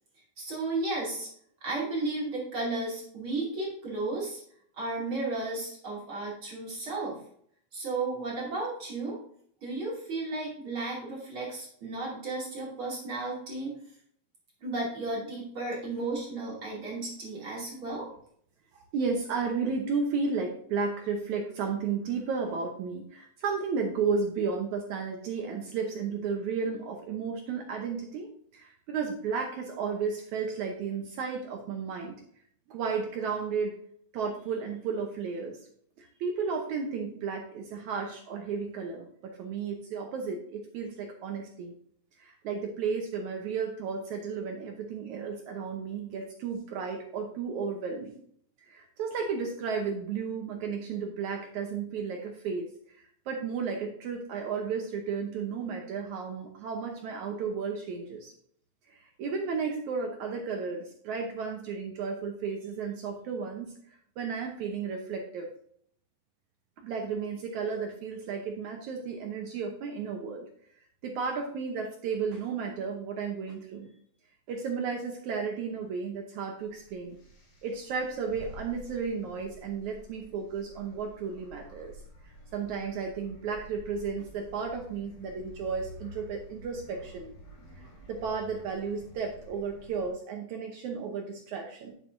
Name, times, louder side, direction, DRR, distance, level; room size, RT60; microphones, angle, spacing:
voice 1, 0.4-1.3 1.6-4.4 4.7-7.2 7.7-9.2 9.6-13.8 14.6-18.1, right 2 dB, 35° right, -5 dB, 3.1 m, -34 dB
voice 2, 18.9-32.2 32.7-33.8 34.1-35.6 36.0-41.7 42.2-48.1 48.7-52.7 53.3-58.3 58.9-63.7 64.2-65.5 66.8-70.5 71.0-73.9 74.5-77.2 77.6-81.9 82.5-87.3 88.1-91.9, right 5 dB, 70° right, 2 dB, 1.9 m, -33 dB
sound 1, 76.6-90.1, equal, 50° left, 4.2 m, -50 dB
10.0 x 7.4 x 2.6 m, 0.63 s
omnidirectional pair, 4.2 m